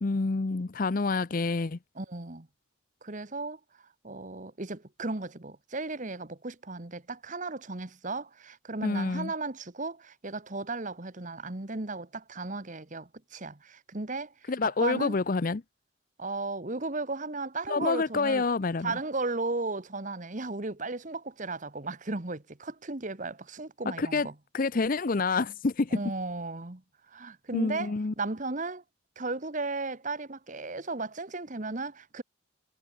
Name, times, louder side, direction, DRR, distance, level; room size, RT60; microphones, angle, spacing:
voice 1, 0.0-1.8 8.8-9.3 14.5-15.6 17.7-18.9 24.0-24.3 24.5-26.0 27.5-28.1, left 3 dB, 40° left, 0.6 m, -27 dB
voice 2, 2.0-2.5 3.0-3.6 4.0-14.3 14.6-15.2 16.2-18.4 18.8-24.3 25.9-26.8 27.1-28.8 29.2-32.2, right 3 dB, 40° right, 1.3 m, -35 dB
head